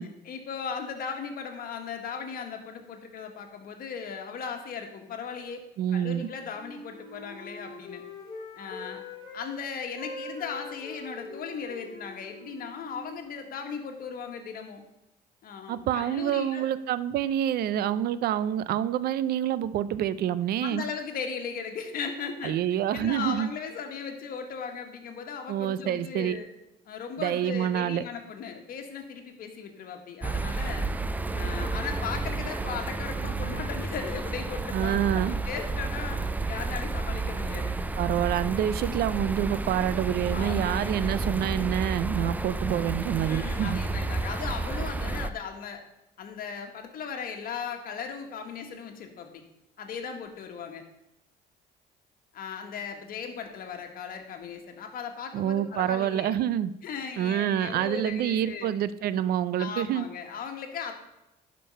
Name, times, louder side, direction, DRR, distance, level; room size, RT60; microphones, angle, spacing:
voice 1, 0.0-5.6 5.9-8.0 8.6-9.0 9.3-14.8 15.4-16.6 20.6-22.6 22.9-26.5 26.8-30.8 31.3-37.7 40.3-40.9 43.3-45.8 46.2-49.4 49.8-50.8 52.3-56.4 56.8-58.8 59.6-60.9, left 6 dB, 60° left, 4 dB, 1.6 m, -37 dB
voice 2, 5.8-6.3 15.7-20.8 22.4-23.5 25.5-26.4 27.2-28.0 34.7-35.3 38.0-43.8 55.3-56.7 57.2-60.1, right 10 dB, 65° right, 16 dB, 0.5 m, -27 dB
Wind instrument woodwind instrument, 6.1-9.5 9.8-13.7, left 2 dB, 25° left, 3.8 m, -44 dB
sound 1, 30.2-45.3, right 3 dB, 10° right, 0.4 m, -31 dB
11.0 x 5.3 x 5.5 m, 0.91 s
cardioid pair, 110°, 17 cm